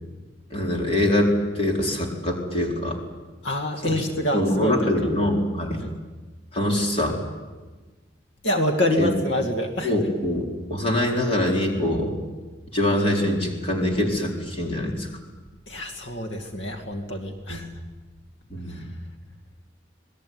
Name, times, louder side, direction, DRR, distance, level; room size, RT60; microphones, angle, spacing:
voice 1, 0.5-3.0 3.8-4.0 4.3-5.8 6.5-7.2 9.0-9.1 9.8-12.1 12.7-15.1 17.5-17.6 18.5-18.8, left 1 dB, 30° left, 0 dB, 4.5 m, -24 dB
voice 2, 3.4-4.9 5.8-5.9 8.4-9.9 15.7-17.7 18.7-18.9, left 1 dB, 85° left, 4 dB, 2.5 m, -26 dB
27.0 x 20.5 x 9.6 m, 1.3 s
head